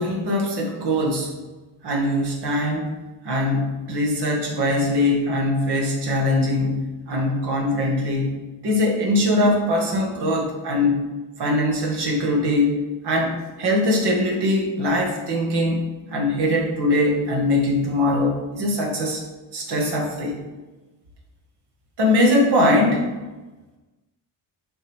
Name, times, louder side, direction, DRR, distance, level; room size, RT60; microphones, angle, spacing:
voice 1, 0.0-1.3 1.8-2.9 3.2-11.0 11.4-12.8 13.0-19.2 19.5-20.4 22.0-23.1, left 1 dB, 65° right, -1 dB, 1.9 m, -22 dB
10.5 x 3.9 x 3.6 m, 1.2 s
cardioid pair, 150°, 43 cm